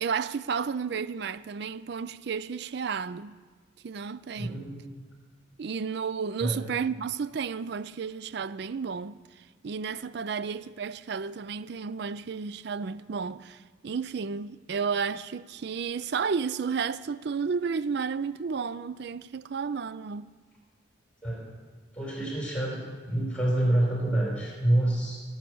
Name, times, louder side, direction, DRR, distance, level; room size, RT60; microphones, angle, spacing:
voice 1, 0.0-3.4 3.8-4.6 5.6-20.3, right 6 dB, 55° right, 0.4 m, -32 dB
voice 2, 4.4-4.8 6.4-6.6 21.2-21.5 21.9-25.2, right 1 dB, 5° left, 4.4 m, -27 dB
19.0 x 8.0 x 6.2 m
head